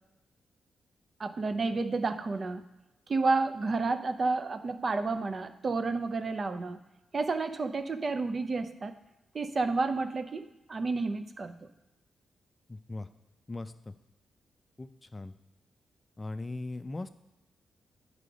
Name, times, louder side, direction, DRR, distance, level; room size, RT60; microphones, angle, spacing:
voice 1, 1.2-2.7 3.1-6.8 7.1-8.9 9.3-11.5, right 3 dB, 45° right, 9 dB, 0.6 m, -30 dB
voice 2, 12.7-13.1 13.5-13.9 14.8-15.3 16.2-17.1, left 2 dB, 25° left, 11 dB, 0.4 m, -39 dB
8.3 x 4.8 x 5.0 m, 0.97 s
cardioid pair, 70°, 0 cm